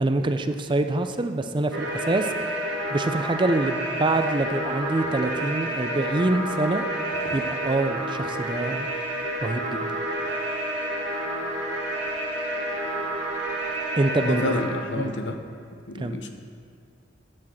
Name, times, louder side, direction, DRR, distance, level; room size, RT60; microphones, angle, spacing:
voice 1, 0.0-2.3 2.9-6.9 7.3-8.9 9.4-9.8 14.0-14.6 15.0-15.1 16.0-16.2, right 2 dB, 25° right, 8 dB, 0.4 m, -25 dB
sound 1, 1.7-14.7, right 1 dB, 75° right, 2.2 m, -29 dB
Wind instrument woodwind instrument, 3.9-9.1, equal, 45° left, 1.7 m, -41 dB
sound 2, 4.1-4.2 4.8-5.5 5.9-6.1 7.1-8.7, right 2 dB, 50° right, 0.8 m, -46 dB
voice 2, 14.3-15.4 15.9-16.3, left 2 dB, 75° left, 6 dB, 0.8 m, -29 dB
8.9 x 6.3 x 7.3 m, 2.4 s
head